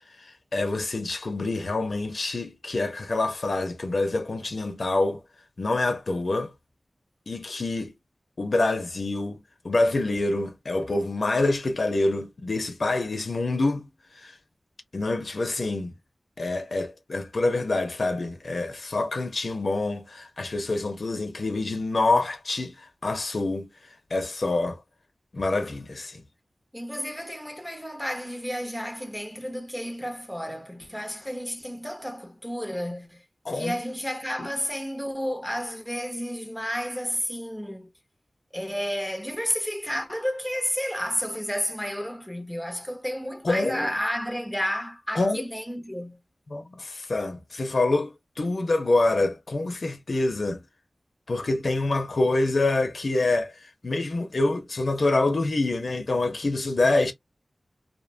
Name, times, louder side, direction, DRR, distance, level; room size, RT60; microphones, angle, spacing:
voice 1, 0.2-5.2 5.6-6.5 7.3-7.9 8.4-13.9 14.2-14.3 14.9-15.9 16.4-23.7 24.1-24.8 25.3-26.2 33.4-33.7 34.4-34.5 43.4-43.9 45.1-45.4 46.5-50.6 51.3-57.1, left 2 dB, 65° left, 0.6 m, -26 dB
voice 2, 26.7-33.2 33.5-37.9 38.5-46.2, equal, ahead, 0.6 m, -31 dB
2.6 x 2.1 x 2.5 m
wide cardioid pair, 80°, 0 cm